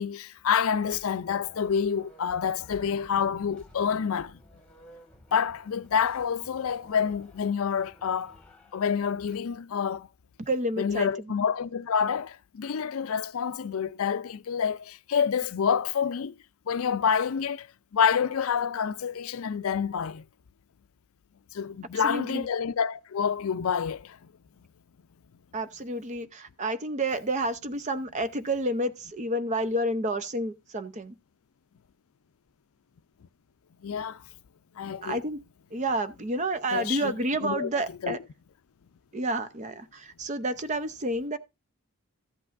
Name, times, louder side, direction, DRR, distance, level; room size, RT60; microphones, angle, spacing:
voice 1, 0.0-4.4 5.3-8.4 8.7-10.1 10.8-16.3 16.7-17.7 17.9-20.2 21.5-24.3 33.8-34.2 34.8-35.2 36.7-37.1 37.4-37.7 38.0-38.2, left 7 dB, 70° left, 0.4 m, -28 dB
sound 1, 0.7-9.0, equal, 5° left, 1.9 m, -55 dB
voice 2, 10.4-11.1 22.0-22.5 25.5-31.2 35.0-35.4 35.7-38.2 39.1-41.4, right 1 dB, 35° right, 0.6 m, -30 dB
14.0 x 8.2 x 2.5 m
head